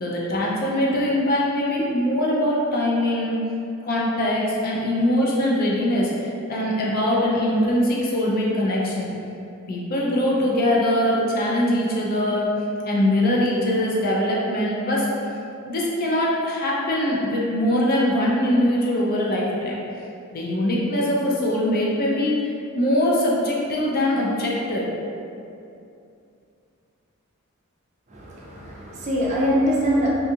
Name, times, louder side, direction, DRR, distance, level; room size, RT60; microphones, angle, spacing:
voice 1, 0.0-3.4 3.8-9.1 9.7-12.5 12.8-15.1 15.7-19.8 20.3-24.9, left 1 dB, 45° left, -4 dB, 0.4 m, -22 dB
voice 2, 28.1-30.1, equal, 35° right, -5 dB, 0.4 m, -23 dB
2.7 x 2.3 x 2.7 m, 2.6 s
head